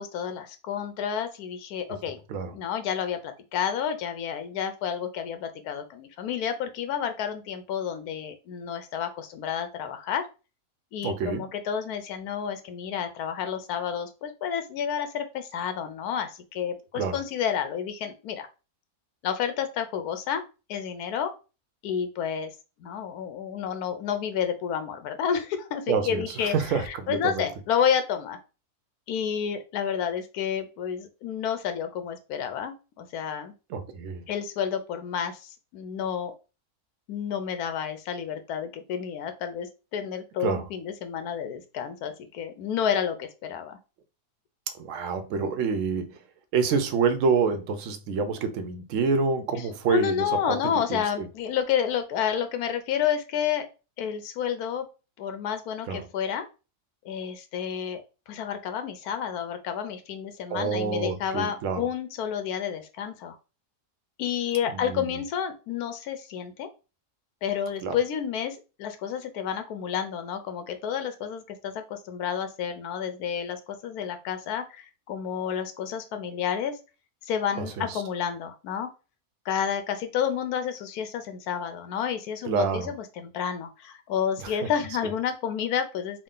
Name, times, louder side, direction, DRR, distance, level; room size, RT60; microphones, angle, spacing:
voice 1, 0.0-2.2 2.5-10.3 10.9-18.5 19.2-20.4 20.7-21.3 21.8-22.5 22.8-28.4 29.1-33.5 34.3-36.3 37.1-43.8 49.9-53.7 54.0-54.9 55.2-56.4 57.0-63.4 64.2-66.7 67.4-76.8 77.2-78.9 79.4-86.2, left 8 dB, 80° left, 1.2 m, -30 dB
voice 2, 11.0-11.4 16.9-17.2 25.9-27.4 33.7-34.2 40.4-40.6 44.8-46.2 46.5-51.3 55.9-56.1 60.5-61.9 64.7-65.1 67.8-68.0 77.6-78.0 82.4-82.9 84.4-84.5, right 5 dB, 65° right, 0.9 m, -27 dB
3.7 x 2.3 x 3.7 m
omnidirectional pair, 1.6 m